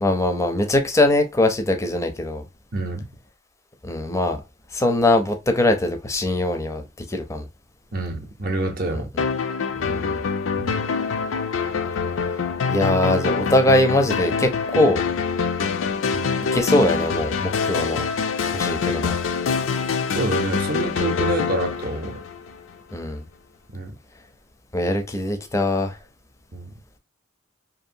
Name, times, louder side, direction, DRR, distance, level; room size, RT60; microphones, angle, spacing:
voice 1, 0.0-2.4 3.8-4.4 4.7-6.8 7.1-7.5 8.9-9.2 9.8-10.2 12.7-15.0 16.5-18.1 18.5-19.2 22.9-23.2 24.7-26.0, left 1 dB, 15° left, 0.5 m, -21 dB
voice 2, 2.7-3.1 7.9-9.1 10.6-10.8 16.1-16.3 20.1-22.2 23.7-23.9 26.5-26.7, right 2 dB, 45° right, 0.6 m, -27 dB
sound 1, 9.2-22.7, left 5 dB, 85° left, 0.4 m, -25 dB
2.7 x 2.5 x 2.6 m
head